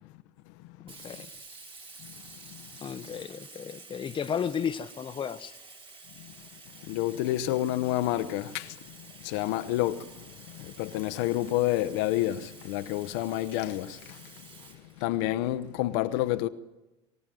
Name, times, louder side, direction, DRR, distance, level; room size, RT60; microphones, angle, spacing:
voice 1, 0.8-1.3 2.8-5.6, left 7 dB, 35° left, 0.9 m, -33 dB
Sink (filling or washing), 0.9-15.6, right 3 dB, 40° right, 4.4 m, -50 dB
voice 2, 6.9-9.0 9.2-14.5 15.0-16.5, left 14 dB, 75° left, 0.8 m, -29 dB
23.0 x 16.5 x 9.2 m
hypercardioid pair, 75°, 15 cm